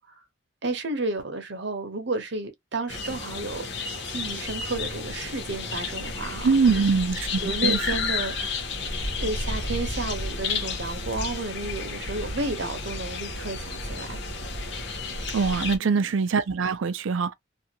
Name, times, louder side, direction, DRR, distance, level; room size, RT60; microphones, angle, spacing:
voice 1, 0.6-3.7 4.1-6.9 7.4-8.4 9.2-14.2 15.8-16.2, right 3 dB, 60° right, 0.8 m, -32 dB
sound 1, 2.9-15.8, left 3 dB, 65° left, 0.8 m, -31 dB
voice 2, 6.4-7.8 15.3-17.3, right 5 dB, 85° right, 0.4 m, -23 dB
2.6 x 2.4 x 2.8 m
head